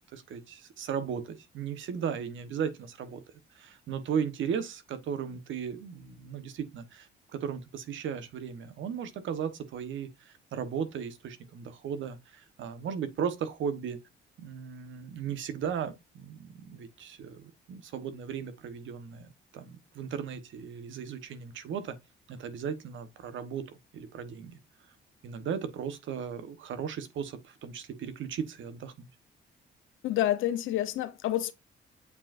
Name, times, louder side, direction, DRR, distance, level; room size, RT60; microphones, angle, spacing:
voice 1, 0.1-3.2 3.5-14.0 14.4-19.3 19.5-22.0 22.3-24.6 25.2-29.1, right 7 dB, 75° right, 1.3 m, -36 dB
voice 2, 30.0-31.5, left 13 dB, 85° left, 1.0 m, -28 dB
8.3 x 5.1 x 2.6 m
cardioid pair, 90°, 20 cm